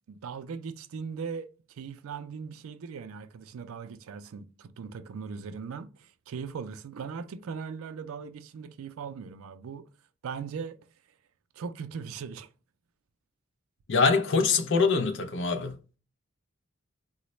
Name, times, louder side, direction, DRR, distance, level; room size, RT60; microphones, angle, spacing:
voice 1, 0.1-1.5 1.8-9.8 10.2-10.8 11.6-12.5, right 6 dB, 90° right, 0.4 m, -39 dB
voice 2, 13.9-15.8, left 4 dB, 60° left, 0.5 m, -24 dB
3.9 x 2.1 x 3.0 m
head